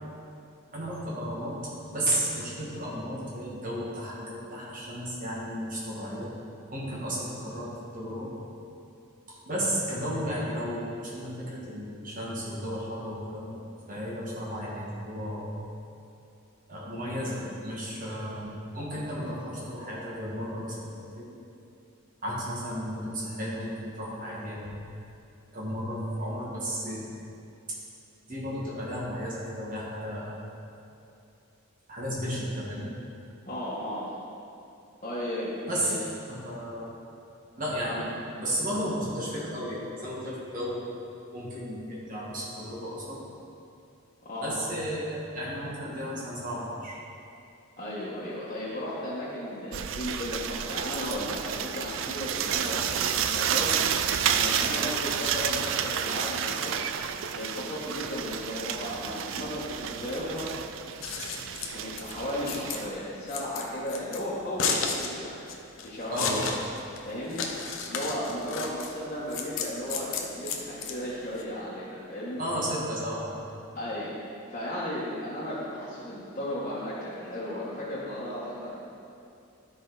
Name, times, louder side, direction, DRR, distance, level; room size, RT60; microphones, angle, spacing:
voice 1, 0.7-6.3 6.7-8.3 9.3-13.6 13.9-15.7 16.7-21.3 22.2-24.7 25.5-27.0 27.7-27.8 28.3-30.6 31.9-32.9 35.7-35.9 36.3-36.8 37.6-38.1 38.4-40.9 41.3-43.2 44.4-47.0 66.1-66.5 72.4-73.4, equal, 40° right, -5 dB, 1.8 m, -33 dB
voice 2, 33.5-34.1 35.0-35.9 37.8-37.9 44.3-44.5 47.8-53.8 54.0-56.8 57.3-60.5 61.7-65.4 65.8-66.4 67.0-67.5 67.8-72.4 73.7-74.1 74.5-78.8, left 1 dB, 30° left, -10 dB, 1.5 m, -35 dB
sound 1, 49.7-62.9, right 8 dB, 60° right, 0.4 m, -30 dB
Scissors, 60.8-71.4, left 5 dB, 65° left, 0.8 m, -34 dB
12.0 x 5.1 x 4.1 m, 2.7 s
head